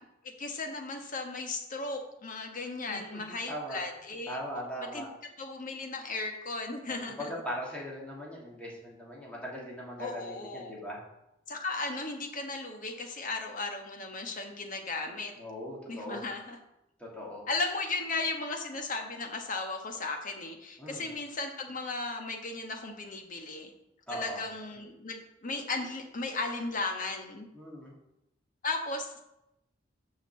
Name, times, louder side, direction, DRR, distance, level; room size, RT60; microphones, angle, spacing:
voice 1, 0.4-4.4 4.8-5.1 5.4-7.3 10.0-10.8 11.5-15.3 15.9-16.6 17.5-23.7 24.1-27.5 28.6-29.2, left 3 dB, 45° left, 3 dB, 1.4 m, -36 dB
voice 2, 2.9-3.8 4.3-5.1 6.8-11.0 15.4-16.2 17.0-17.4 20.8-21.1 24.1-24.4 27.5-27.9, equal, 5° left, -5 dB, 2.8 m, -40 dB
7.0 x 5.7 x 7.4 m, 0.88 s
head